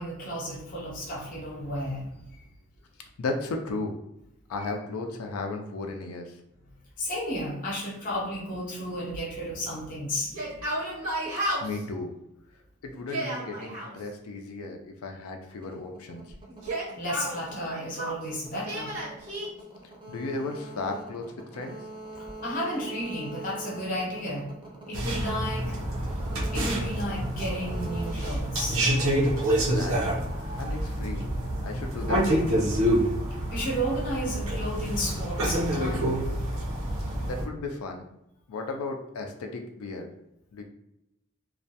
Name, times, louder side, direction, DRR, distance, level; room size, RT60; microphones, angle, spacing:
voice 1, 0.0-2.2 7.0-10.5 17.0-19.0 22.4-24.5 24.9-26.2 26.5-28.8 33.5-36.4, equal, 40° left, -3 dB, 0.6 m, -33 dB
voice 2, 3.2-3.9 4.5-6.4 11.6-12.1 12.8-16.2 20.1-21.8 29.7-30.0 30.6-31.3 31.6-32.9 37.2-38.0 38.5-40.1 40.5-40.6, left 3 dB, 80° left, 4 dB, 0.4 m, -35 dB
Yell, 10.2-11.8 12.9-13.9 16.5-18.2 18.6-19.5, right 1 dB, 90° right, 1.1 m, -32 dB
sound 1, 15.5-29.4, right 2 dB, 25° right, 0.5 m, -44 dB
sound 2, 24.9-37.4, right 1 dB, 70° right, 0.7 m, -27 dB
2.3 x 2.1 x 2.7 m, 0.84 s
head